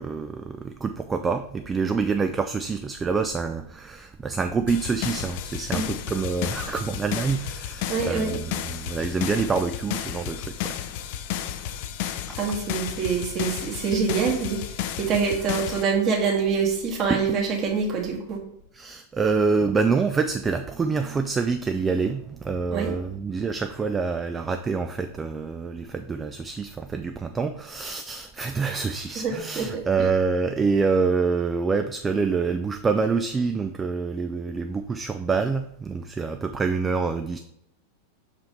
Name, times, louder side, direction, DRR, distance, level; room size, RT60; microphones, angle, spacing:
voice 1, 0.0-10.8 12.3-12.4 17.1-17.2 18.7-37.4, right 4 dB, 15° right, 7 dB, 0.4 m, -26 dB
sound 1, 4.7-15.8, left 10 dB, 50° left, 0.5 m, -32 dB
voice 2, 7.9-8.4 12.4-14.7 15.0-18.4 22.7-22.9 29.1-30.1, right 5 dB, 35° right, 0 dB, 1.7 m, -25 dB
6.3 x 4.9 x 3.3 m, 0.76 s
figure-of-eight pair, 90°, 0 cm